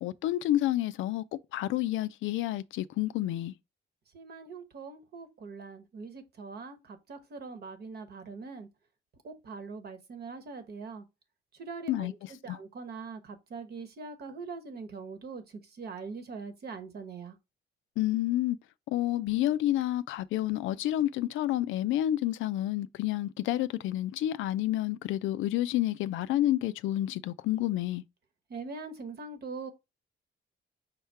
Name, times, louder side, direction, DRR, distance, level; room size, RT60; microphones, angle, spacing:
voice 1, 0.0-1.2 1.5-3.5 11.9-12.1 12.5-12.6 18.0-18.6 18.9-28.0, left 14 dB, 80° left, 0.4 m, -29 dB
voice 2, 4.1-8.7 9.2-11.0 11.5-17.4 28.5-29.7, right 4 dB, 55° right, 1.0 m, -42 dB
5.4 x 2.2 x 4.5 m
cardioid pair, 90°, 20 cm